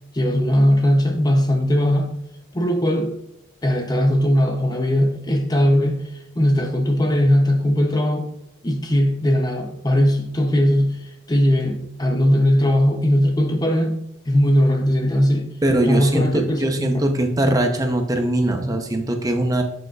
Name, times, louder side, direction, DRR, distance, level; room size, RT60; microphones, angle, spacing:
voice 1, 0.1-2.1 2.5-3.2 3.6-6.0 6.4-8.3 8.6-14.0 14.3-15.5 15.9-17.1, equal, 20° left, 0.6 m, -19 dB
voice 2, 15.6-19.6, right 1 dB, 15° right, 0.7 m, -21 dB
11.5 x 6.4 x 2.4 m
head